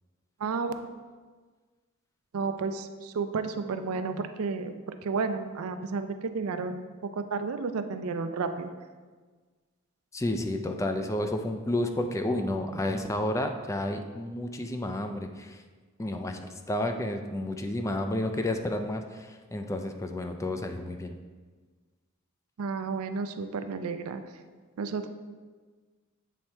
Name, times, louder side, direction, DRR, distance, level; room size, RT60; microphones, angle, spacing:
voice 1, 0.4-0.7 2.3-6.8 7.1-8.7 22.6-24.2 24.8-25.1, right 4 dB, 80° right, 9 dB, 0.4 m, -32 dB
voice 2, 10.1-15.6 16.0-21.1, left 1 dB, 15° left, 5 dB, 0.3 m, -31 dB
7.3 x 3.3 x 4.3 m, 1.4 s
head